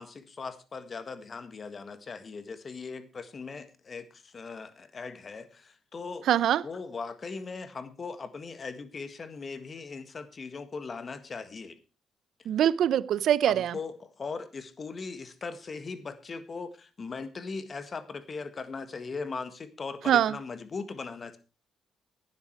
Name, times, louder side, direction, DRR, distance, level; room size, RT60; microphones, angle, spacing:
voice 1, 0.0-6.3 6.6-11.8 13.5-21.4, left 4 dB, 40° left, 1.6 m, -39 dB
voice 2, 6.3-6.6 12.5-13.8 20.1-20.4, right 10 dB, 75° right, 0.6 m, -23 dB
12.0 x 9.8 x 4.6 m
cardioid pair, 90°, 0 cm